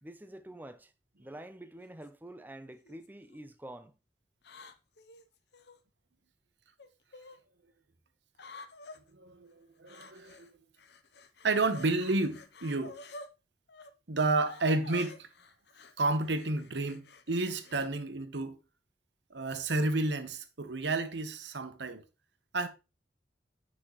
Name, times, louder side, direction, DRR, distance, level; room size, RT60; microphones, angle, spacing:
voice 1, 0.0-0.9 1.2-3.9, right 1 dB, 10° right, 0.6 m, -47 dB
sound 1, 1.8-2.1 2.8-3.4 4.4-5.8 6.8-7.4 8.3-9.0 9.9-10.5 10.8-13.3 13.7-13.9 14.4-17.9, left 3 dB, 65° left, 0.8 m, -50 dB
voice 2, 9.1-10.5 11.4-13.0 14.1-15.3 16.0-18.6 19.3-22.0 22.5-22.7, right 2 dB, 80° right, 1.0 m, -31 dB
8.2 x 6.1 x 3.1 m
head